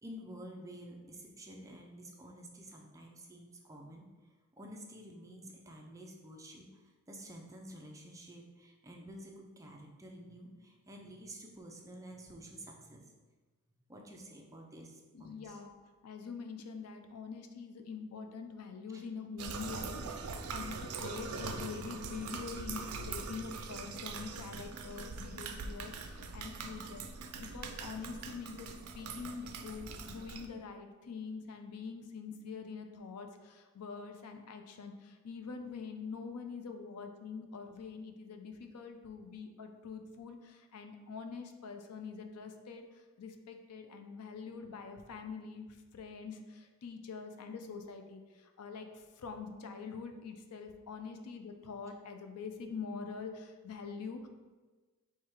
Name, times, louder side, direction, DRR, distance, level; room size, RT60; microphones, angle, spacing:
voice 1, 0.0-4.0 4.6-6.8 7.1-13.0 13.9-15.6 18.9-19.0, right 1 dB, 15° right, 1 dB, 0.4 m, -50 dB
voice 2, 15.1-15.7 16.0-27.0 27.4-42.9 43.2-45.7 45.9-54.3, left 5 dB, 85° left, 6 dB, 0.5 m, -45 dB
sound 1, 19.4-30.5, right 4 dB, 70° right, 0.4 m, -42 dB
4.7 x 2.3 x 4.3 m, 1.3 s
head